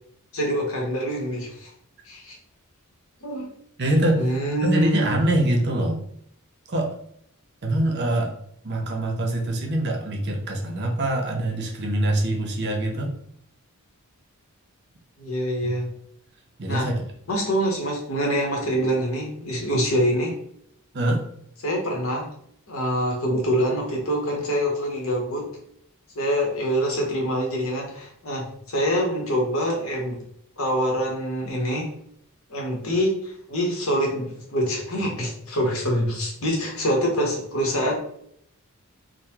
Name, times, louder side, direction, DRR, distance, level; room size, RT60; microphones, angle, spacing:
voice 1, 0.3-1.7 2.1-2.4 3.2-3.5 4.1-5.1 15.2-15.9 16.7-16.9 17.3-20.4 21.6-22.3 22.7-25.5 26.2-30.2 30.6-31.9 32.5-37.9, equal, 65° left, 0 dB, 0.9 m, -25 dB
voice 2, 3.8-6.0 6.7-7.0 7.6-8.3 8.6-13.1 15.6-15.7 16.6-17.1 20.9-21.3, right 1 dB, 50° right, 2 dB, 0.6 m, -24 dB
3.7 x 2.0 x 2.9 m, 0.68 s
head